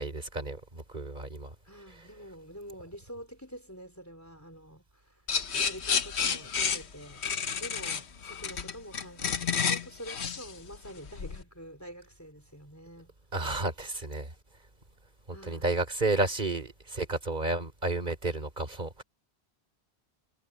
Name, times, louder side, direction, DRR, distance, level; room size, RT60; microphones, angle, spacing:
voice 1, 0.0-1.5 13.3-14.3 15.3-19.0, right 2 dB, 45° right, 3.8 m, -31 dB
voice 2, 1.6-5.2 5.5-7.2 7.6-13.1 15.3-15.8, equal, 15° left, 3.9 m, -46 dB
sound 1, 5.3-11.4, left 6 dB, 85° left, 1.4 m, -31 dB
omnidirectional pair, 1.1 m